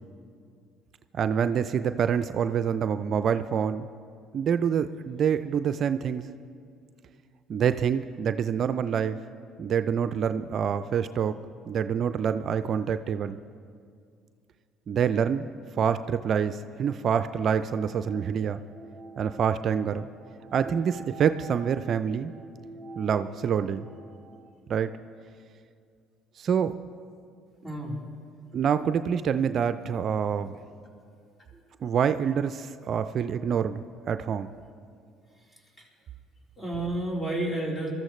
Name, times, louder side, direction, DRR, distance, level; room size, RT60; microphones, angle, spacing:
voice 1, 1.1-3.9 4.3-6.3 7.5-9.2 9.6-11.3 11.7-13.4 14.9-15.5 15.7-18.6 19.2-20.1 20.5-22.3 23.0-23.9 24.7-24.9 26.4-26.7 28.5-30.6 31.8-34.5, right 7 dB, 55° right, 11 dB, 0.4 m, -26 dB
sound 1, 17.8-24.5, right 3 dB, 30° right, 1.1 m, -48 dB
voice 2, 27.6-28.0 31.5-31.6 35.5-35.9 36.6-37.9, right 1 dB, 20° left, -3 dB, 3.9 m, -31 dB
22.0 x 13.5 x 3.2 m, 2.3 s
supercardioid pair, 70°, 0 cm